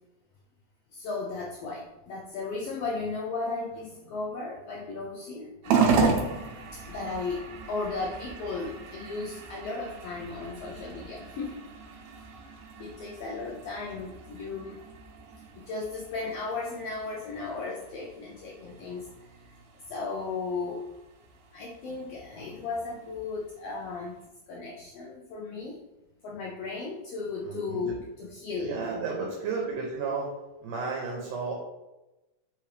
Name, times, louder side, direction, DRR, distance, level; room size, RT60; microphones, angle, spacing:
voice 1, 0.9-6.3 6.7-11.6 12.3-12.4 12.8-14.8 15.6-19.1 19.9-20.8 21.5-24.1 24.5-25.8 26.2-28.8, left 3 dB, 90° left, -2 dB, 1.3 m, -35 dB
sound 1, 5.6-24.3, right 5 dB, 90° right, 2.1 m, -34 dB
voice 2, 27.4-28.0 28.6-30.3 30.6-31.5, right 4 dB, 75° right, -1 dB, 1.8 m, -33 dB
4.7 x 3.4 x 3.2 m, 1.0 s
omnidirectional pair, 3.4 m